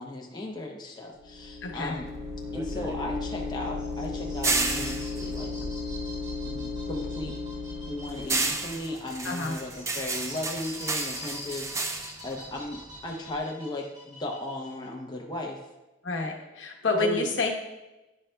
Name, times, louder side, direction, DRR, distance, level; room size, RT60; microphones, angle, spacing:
voice 1, 0.0-2.1 2.5-5.5 6.4-7.4 7.9-15.6 17.0-17.3, left 1 dB, 20° left, 0 dB, 0.6 m, -36 dB
sound 1, 1.2-8.9, left 3 dB, 60° right, 1.1 m, -35 dB
voice 2, 1.6-1.9 9.2-9.5 16.0-17.5, left 3 dB, 75° left, 1 dB, 0.9 m, -28 dB
sound 2, 2.1-6.6 6.9-13.4, right 3 dB, 15° right, 0.3 m, -32 dB
sound 3, 3.6-14.9, left 1 dB, 40° right, 1.6 m, -46 dB
10.0 x 5.4 x 2.2 m, 1.0 s
head